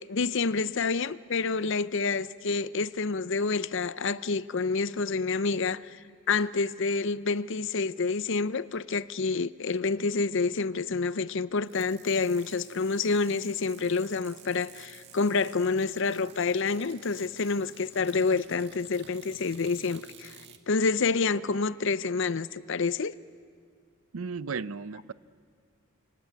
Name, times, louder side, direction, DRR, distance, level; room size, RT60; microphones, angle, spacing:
voice 1, 0.0-6.0 6.3-20.3 20.7-23.1, left 4 dB, 60° left, 0.6 m, -28 dB
sound 1, 11.6-20.6, right 7 dB, 50° right, 1.7 m, -52 dB
voice 2, 24.1-25.1, right 5 dB, 70° right, 0.6 m, -35 dB
26.5 x 25.5 x 8.5 m
head